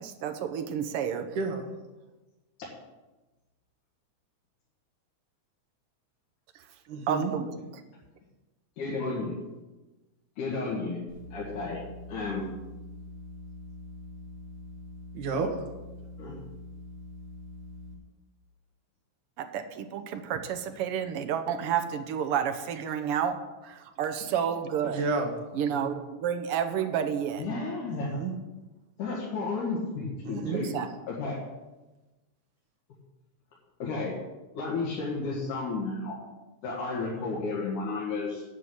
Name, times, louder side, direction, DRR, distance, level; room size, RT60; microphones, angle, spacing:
voice 1, 0.0-1.4 7.1-7.6 19.4-23.4 23.6-25.0 25.5-27.4 30.3-30.9, right 8 dB, 70° right, 7 dB, 1.4 m, -30 dB
voice 2, 1.4-1.7 6.9-7.3 15.1-15.5 24.8-25.4 28.1-28.3 30.2-30.6, right 4 dB, 85° right, 3 dB, 3.0 m, -30 dB
voice 3, 8.8-9.4 10.4-11.0 11.3-11.8 12.1-12.4 16.2-16.3 25.7-25.8 27.4-28.2 29.0-30.7 31.1-31.3 33.8-34.1 34.5-36.2 36.6-38.4, left 3 dB, 90° left, -5 dB, 3.4 m, -32 dB
sound 1, 11.1-17.9, equal, 15° right, 2.7 m, -44 dB
9.7 x 6.3 x 8.7 m, 1.1 s
omnidirectional pair, 3.4 m